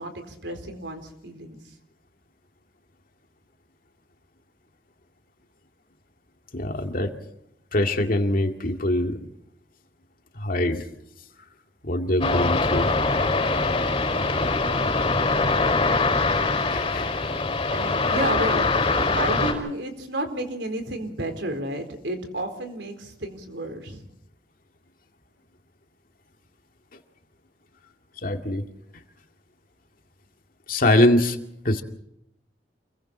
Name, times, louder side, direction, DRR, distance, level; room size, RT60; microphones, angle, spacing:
voice 1, 0.0-1.6 17.7-24.0, right 1 dB, 80° right, 6 dB, 4.2 m, -31 dB
voice 2, 6.5-7.1 7.7-9.3 10.3-10.9 11.8-12.9 16.7-17.1 28.2-28.7 30.7-31.4 31.6-31.8, left 1 dB, 55° left, 5 dB, 2.2 m, -23 dB
sound 1, 12.2-19.5, left 3 dB, 30° left, 5.0 m, -23 dB
28.5 x 22.5 x 4.4 m, 0.76 s
head